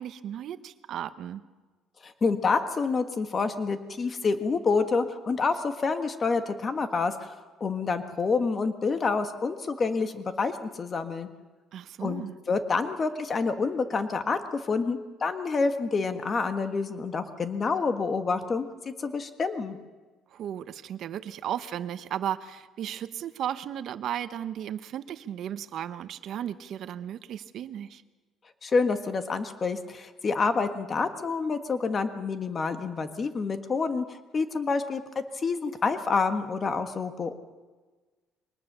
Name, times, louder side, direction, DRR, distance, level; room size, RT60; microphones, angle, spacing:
voice 1, 0.0-1.4 11.7-12.3 20.3-28.0, right 10 dB, 55° right, 12 dB, 1.0 m, -35 dB
voice 2, 2.0-11.3 12.0-12.2 12.5-19.8 28.6-37.4, left 4 dB, 30° left, 9 dB, 1.5 m, -28 dB
23.0 x 19.5 x 6.8 m, 1.3 s
cardioid pair, 140°, 0 cm